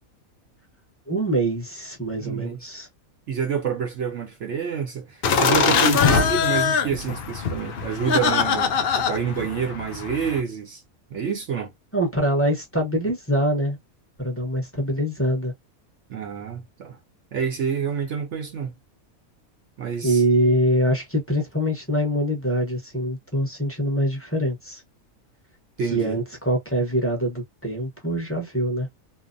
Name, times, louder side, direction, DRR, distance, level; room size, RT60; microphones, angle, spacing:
voice 1, 1.1-2.9 11.9-13.8 14.2-15.5 20.0-24.8 25.9-28.9, equal, 15° left, 0.6 m, -24 dB
voice 2, 2.2-2.6 3.3-10.8 11.1-11.7 16.1-17.0 17.3-18.7 19.8-20.2 25.8-26.2, right 7 dB, 60° right, 0.9 m, -28 dB
sound 1, 5.2-10.4, left 6 dB, 75° left, 0.5 m, -22 dB
2.7 x 2.1 x 2.5 m
omnidirectional pair, 1.5 m